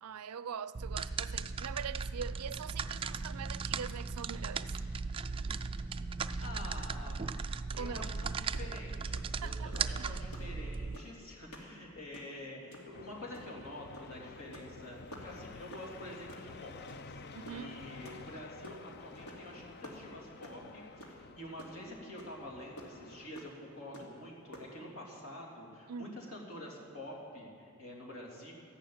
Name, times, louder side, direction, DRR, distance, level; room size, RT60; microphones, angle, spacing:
voice 1, 0.0-4.8 7.7-8.1 9.4-10.1 17.3-17.8 25.9-26.2, right 7 dB, 80° right, 0.5 m, -43 dB
sound 1, 0.7-11.0, right 4 dB, 25° right, 0.3 m, -37 dB
voice 2, 6.4-7.2 7.7-16.7 17.0-28.5, left 1 dB, 65° left, 3.3 m, -47 dB
sound 2, 7.9-8.1 8.4-8.6 9.1-9.3 9.7-9.9 10.3-10.5 10.9-11.2 11.5-11.7 12.0-12.4 12.7-12.9 13.3-13.6 13.9-14.1 14.4-14.7 15.1-15.3 15.7-15.9 16.3-16.5 16.9-17.2 17.5-18.8 19.3-19.5 19.8-20.6 21.0-21.2 21.4-21.9 22.2-22.3 22.8-22.9 23.4-23.5 23.9-24.2 24.5-24.7, right 1 dB, 80° left, 2.7 m, -49 dB
sound 3, 12.9-23.3, left 4 dB, 45° left, 0.5 m, -51 dB
13.5 x 11.5 x 8.8 m
head